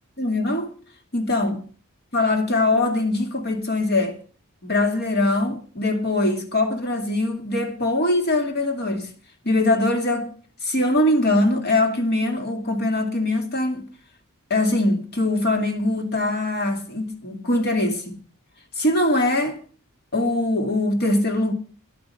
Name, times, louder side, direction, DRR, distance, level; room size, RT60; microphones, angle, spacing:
voice 1, 0.2-0.7 1.1-1.6 2.1-4.2 4.6-9.1 9.4-10.3 10.6-13.9 14.5-18.2 18.8-19.6 20.1-21.5, left 2 dB, 50° left, 2.5 m, -22 dB
12.0 x 10.5 x 5.7 m
head